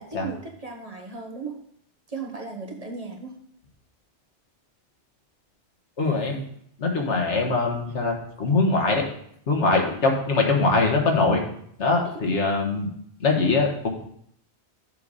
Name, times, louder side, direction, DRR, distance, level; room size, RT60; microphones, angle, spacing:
voice 1, 0.0-1.6 2.1-3.4 12.0-12.4, right 4 dB, 35° right, 1 dB, 1.1 m, -36 dB
voice 2, 6.0-6.4 6.8-9.0 9.5-11.4 11.8-12.9 13.2-13.9, left 3 dB, 80° left, 2 dB, 1.6 m, -22 dB
6.5 x 4.0 x 6.4 m, 0.67 s
omnidirectional pair, 1.2 m